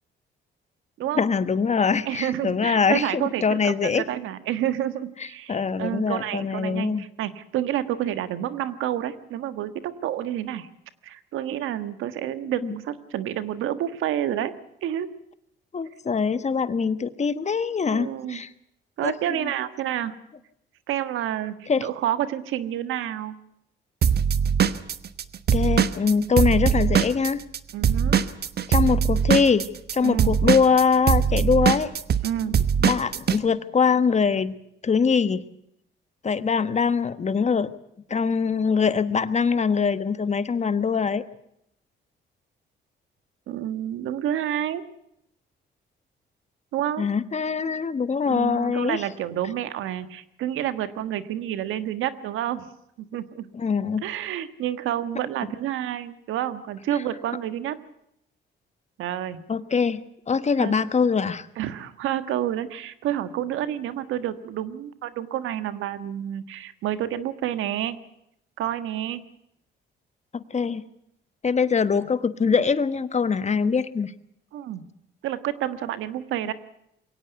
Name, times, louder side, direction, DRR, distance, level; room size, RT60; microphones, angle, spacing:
voice 1, 1.1-4.0 5.5-7.0 12.6-12.7 15.7-18.5 19.0-19.1 19.4-19.5 21.7-21.9 25.5-27.4 28.7-31.9 32.8-34.6 34.8-35.4 36.2-37.7 38.1-41.2 47.0-49.0 53.5-54.0 59.5-61.5 70.3-70.8 71.4-74.1, left 5 dB, 35° left, 13 dB, 1.3 m, -23 dB
voice 2, 2.1-10.7 11.0-14.5 14.8-15.1 17.9-18.4 19.0-20.1 20.9-23.3 27.7-28.2 30.0-30.3 32.2-32.6 43.5-44.8 46.7-47.1 48.2-52.7 53.0-53.5 54.0-57.8 59.0-59.4 60.6-60.8 61.6-68.0 68.6-69.2 74.5-74.9 75.2-76.5, right 11 dB, 85° right, 12 dB, 1.5 m, -29 dB
Drum kit / Drum, 24.0-27.6 27.8-33.4, right 7 dB, 55° right, 1.2 m, -21 dB
22.5 x 17.5 x 8.0 m, 0.76 s
cardioid pair, 90°, 20 cm